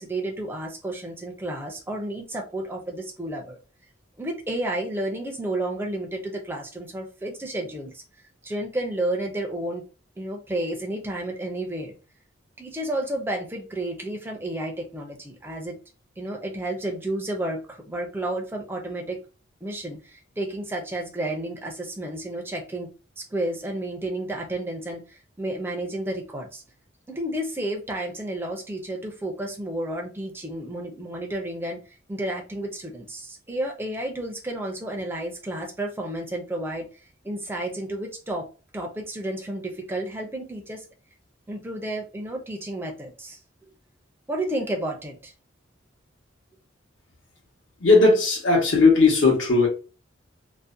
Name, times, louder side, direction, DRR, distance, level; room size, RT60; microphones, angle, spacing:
voice 1, 0.0-3.6 4.2-8.0 8.4-9.8 10.2-11.9 12.6-15.8 16.2-19.2 19.6-22.9 23.2-26.6 27.1-31.8 32.1-36.9 37.2-38.5 38.7-40.8 41.5-43.4 44.3-45.3, right 1 dB, 10° right, 0 dB, 0.4 m, -31 dB
voice 2, 47.8-49.7, left 3 dB, 75° left, -1 dB, 1.0 m, -17 dB
2.6 x 2.1 x 2.4 m, 0.35 s
head